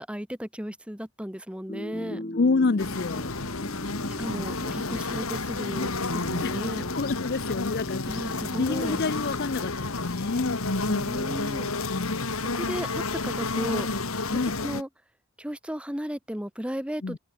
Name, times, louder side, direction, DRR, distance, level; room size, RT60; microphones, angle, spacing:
voice 1, 0.0-2.2 4.2-6.9 8.1-9.0 10.9-11.7 12.5-13.9 14.6-14.9 15.4-17.2, equal, 5° right, 1.8 m, -35 dB
sound 1, 1.7-10.5, left 1 dB, 35° left, 3.7 m, -40 dB
voice 2, 2.3-3.3 6.4-10.6 11.9-12.3 14.3-14.5 17.0-17.2, left 3 dB, 50° left, 0.6 m, -28 dB
sound 2, 2.8-14.8, left 3 dB, 85° left, 2.7 m, -31 dB
head